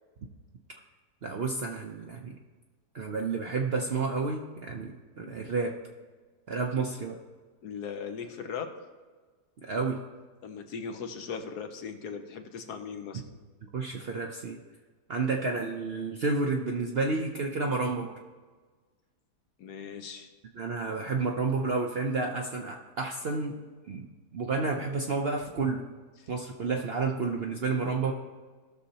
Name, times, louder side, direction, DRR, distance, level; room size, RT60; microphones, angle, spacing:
voice 1, 1.2-2.4 2.9-5.8 6.5-7.2 9.6-10.0 13.7-14.6 15.1-18.1 20.5-23.6 23.9-24.1 24.3-25.8 26.3-28.1, right 4 dB, 60° right, 2 dB, 0.6 m, -30 dB
voice 2, 7.6-8.7 10.4-13.2 19.6-20.3, left 6 dB, 75° left, 6 dB, 1.4 m, -38 dB
16.5 x 6.4 x 2.8 m, 1.4 s
omnidirectional pair, 1.7 m